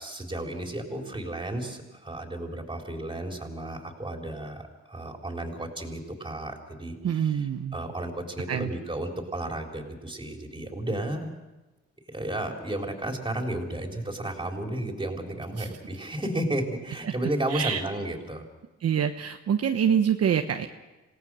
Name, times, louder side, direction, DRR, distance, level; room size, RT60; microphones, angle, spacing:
voice 1, 0.0-7.5 7.7-11.3 12.1-18.4, right 1 dB, 15° right, 2 dB, 3.9 m, -33 dB
voice 2, 7.0-7.7 8.5-8.7 15.5-15.7 17.0-17.1 17.5-17.8 18.8-20.7, right 8 dB, 55° right, 5 dB, 1.1 m, -25 dB
27.0 x 17.5 x 6.4 m, 1.1 s
cardioid pair, 90°, 30 cm